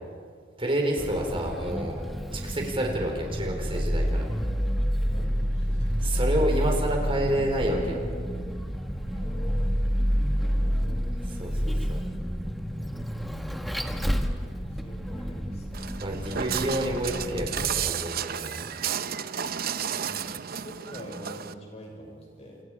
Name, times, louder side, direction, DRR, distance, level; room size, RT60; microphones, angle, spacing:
voice 1, 0.6-2.0 2.3-4.3 6.0-8.0 11.4-12.0 16.0-18.7, right 1 dB, 30° right, 1 dB, 4.6 m, -29 dB
Vehicle, 1.0-17.9, equal, ahead, 1.3 m, -29 dB
voice 2, 5.0-6.0 9.1-10.0 10.3-11.1 14.0-16.0 19.9-22.6, equal, 35° left, 0 dB, 6.6 m, -45 dB
Walk footsteps, 15.7-21.5, right 8 dB, 55° right, 0.7 m, -32 dB
30.0 x 27.5 x 5.0 m, 2.1 s
head